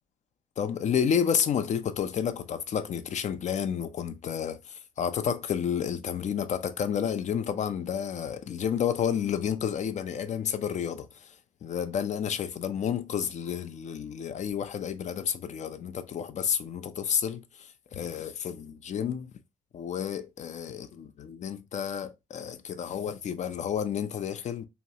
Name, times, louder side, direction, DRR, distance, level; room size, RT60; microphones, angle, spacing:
voice 1, 0.6-11.3 11.6-19.3 19.7-24.7, left 8 dB, 50° left, 0.5 m, -30 dB
3.0 x 2.2 x 2.7 m
hypercardioid pair, 55°, 16 cm